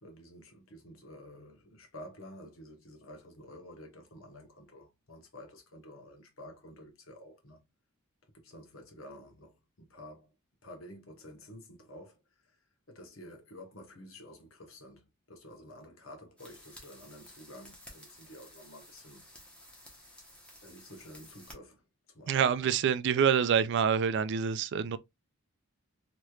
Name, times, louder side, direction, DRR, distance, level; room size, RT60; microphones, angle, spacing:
voice 1, 0.0-7.6 8.3-10.3 10.6-12.2 12.4-12.6 12.9-19.2 20.6-22.7, left 1 dB, 70° left, 1.1 m, -51 dB
sound 1, 16.4-21.5, left 1 dB, 5° left, 0.9 m, -54 dB
voice 2, 22.3-25.0, right 7 dB, 55° right, 0.3 m, -26 dB
3.1 x 3.0 x 2.3 m
head